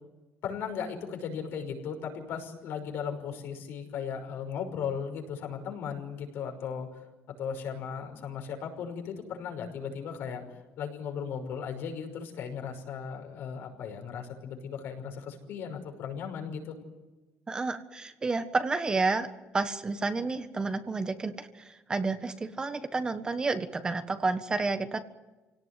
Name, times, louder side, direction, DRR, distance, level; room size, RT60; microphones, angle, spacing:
voice 1, 0.4-6.9 7.4-10.4 10.8-16.8, left 7 dB, 70° left, 3 dB, 5.8 m, -36 dB
voice 2, 17.5-19.3 19.5-25.0, right 3 dB, 20° right, 8 dB, 1.5 m, -30 dB
27.5 x 18.0 x 9.3 m, 1.1 s
cardioid pair, 145°, 4 cm